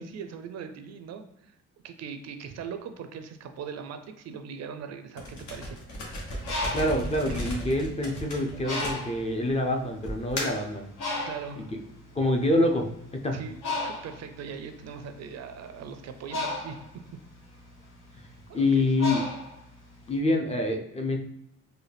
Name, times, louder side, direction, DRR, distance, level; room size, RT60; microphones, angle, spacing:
voice 1, 0.0-1.5 1.8-5.8 7.3-7.5 11.1-11.7 13.3-16.8 18.5-18.9, right 6 dB, 60° right, 8 dB, 0.5 m, -40 dB
sound 1, 5.2-9.5 10.0-10.7, equal, 70° left, 1.1 m, -35 dB
Bird, 6.2-8.1 8.6-9.3 10.0-10.1 10.4-20.1, left 2 dB, 85° left, 1.3 m, -35 dB
voice 2, 6.7-10.9 12.2-13.4 18.5-19.2 20.1-21.2, left 1 dB, 20° left, 2 dB, 0.5 m, -26 dB
4.0 x 2.2 x 3.3 m, 0.80 s
cardioid pair, 90°, 30 cm